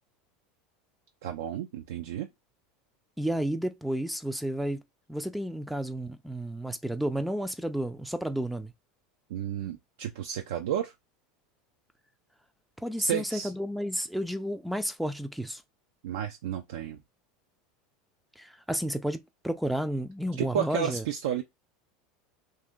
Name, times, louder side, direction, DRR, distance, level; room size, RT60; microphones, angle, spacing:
voice 1, 1.2-2.3 9.3-10.9 13.0-13.5 16.0-17.0 20.4-21.4, right 10 dB, 75° right, 0.4 m, -32 dB
voice 2, 3.2-4.8 5.1-8.7 12.8-15.6 18.4-21.0, equal, 5° right, 0.4 m, -31 dB
2.7 x 2.6 x 3.5 m
hypercardioid pair, 90°, 0 cm